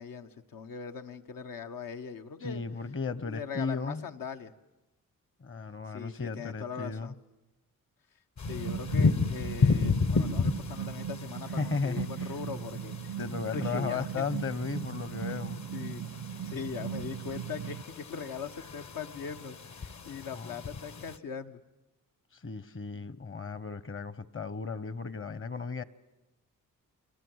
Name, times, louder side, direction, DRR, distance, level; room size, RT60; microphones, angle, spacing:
voice 1, 0.0-2.6 3.2-4.5 5.9-7.1 8.4-13.2 13.5-14.3 15.7-16.0 16.4-21.6, left 6 dB, 85° left, 6 dB, 1.3 m, -40 dB
voice 2, 2.4-4.0 5.4-7.1 11.6-12.3 13.2-15.6 20.3-20.5 22.4-25.8, left 4 dB, 40° left, 18 dB, 0.9 m, -35 dB
sound 1, 8.4-21.2, left 4 dB, 55° left, 1.2 m, -33 dB
sound 2, 8.5-17.8, right 9 dB, 90° right, 0.9 m, -38 dB
30.0 x 21.5 x 8.0 m, 0.99 s
cardioid pair, 95°, 33 cm